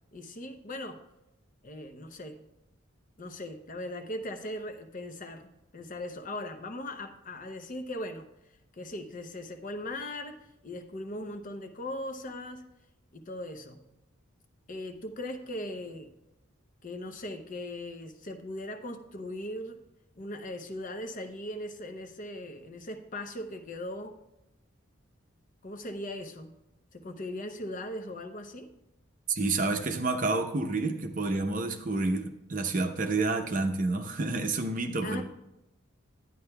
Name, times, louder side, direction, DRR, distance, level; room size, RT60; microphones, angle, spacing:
voice 1, 0.1-1.0 1.6-2.5 3.2-8.3 8.7-12.7 13.1-13.8 14.7-16.1 16.8-19.8 20.2-24.2 25.6-26.5 26.9-28.7 35.0-35.2, left 1 dB, 40° left, 7 dB, 0.6 m, -39 dB
voice 2, 29.3-35.2, right 3 dB, 40° right, 6 dB, 0.7 m, -29 dB
11.5 x 9.6 x 2.3 m, 0.89 s
head